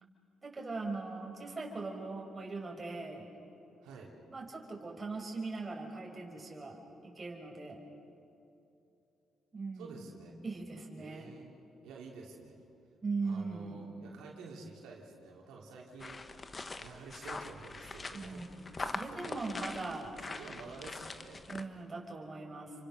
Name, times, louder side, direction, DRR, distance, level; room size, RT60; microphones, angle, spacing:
voice 1, 0.4-3.3 4.3-6.8 7.0-7.8 9.5-9.9 10.4-11.3 13.0-13.8 18.1-20.1 21.5-22.7, right 3 dB, 25° right, 0 dB, 5.4 m, -40 dB
voice 2, 3.8-4.1 9.7-10.4 11.0-11.5 11.8-12.6 13.2-16.3 16.7-18.7 19.1-19.8 20.3-21.4, right 4 dB, 90° right, -2 dB, 3.4 m, -50 dB
sound 1, 16.0-21.6, left 3 dB, 30° left, 1.4 m, -43 dB
29.5 x 25.0 x 6.6 m, 2.8 s
cardioid pair, 90°, 0 cm